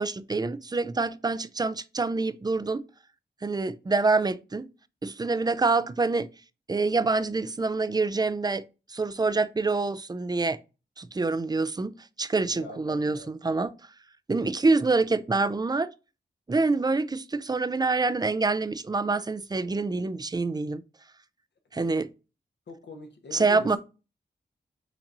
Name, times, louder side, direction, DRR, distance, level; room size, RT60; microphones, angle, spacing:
voice 1, 0.0-2.8 3.4-4.7 5.0-6.3 6.7-8.6 8.9-10.6 11.0-13.7 14.3-15.9 16.5-20.8 21.7-22.1 23.3-23.8, right 3 dB, 20° right, 0.4 m, -26 dB
voice 2, 12.5-13.5 19.8-20.1 22.7-23.8, left 3 dB, 70° left, 1.1 m, -43 dB
5.9 x 2.9 x 2.6 m
cardioid pair, 60°, 19 cm